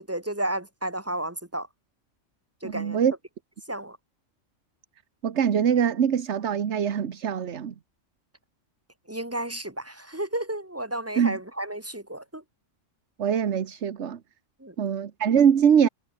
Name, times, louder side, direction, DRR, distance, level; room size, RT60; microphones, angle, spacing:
voice 1, 0.0-1.7 2.6-3.0 3.7-4.0 9.1-12.4 14.6-14.7, right 1 dB, 10° right, 1.6 m, -32 dB
voice 2, 2.6-3.1 5.2-7.7 11.2-11.4 13.2-14.2 14.8-15.9, right 8 dB, 65° right, 1.4 m, -23 dB
omnidirectional pair, 1.3 m